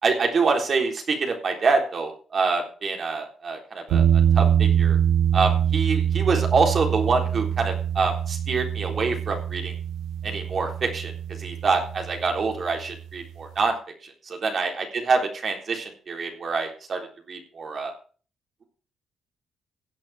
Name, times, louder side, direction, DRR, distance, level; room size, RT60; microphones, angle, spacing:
voice 1, 0.0-4.1 4.3-5.0 5.3-9.7 10.2-11.1 11.4-13.8 14.3-17.0 17.3-17.9, right 4 dB, 45° right, 3 dB, 3.8 m, -25 dB
sound 1, 3.9-12.8, right 9 dB, 85° right, 1.4 m, -24 dB
16.0 x 8.9 x 3.6 m, 0.39 s
cardioid pair, 90°, 0 cm